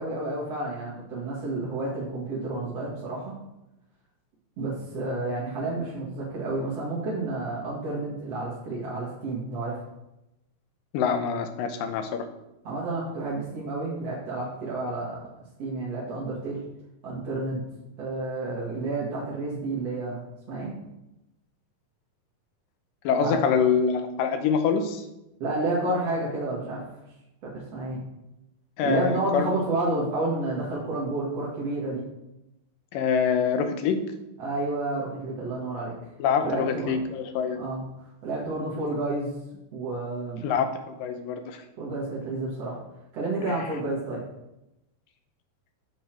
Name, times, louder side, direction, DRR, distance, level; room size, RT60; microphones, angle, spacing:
voice 1, 0.0-3.3 4.6-9.8 12.6-15.2 15.6-16.6 17.0-17.6 18.0-20.7 23.2-23.4 25.4-26.8 27.4-28.0 28.8-32.0 34.4-35.9 36.4-36.9 37.5-37.8 38.2-39.3 39.7-40.5 41.8-42.8 43.1-44.2, right 2 dB, 50° right, -7 dB, 2.8 m, -30 dB
voice 2, 10.9-12.3 23.0-25.0 28.8-29.5 32.9-34.0 36.2-37.6 40.4-41.6, left 6 dB, 90° left, 7 dB, 2.5 m, -25 dB
8.4 x 8.3 x 4.6 m, 0.92 s
omnidirectional pair, 3.8 m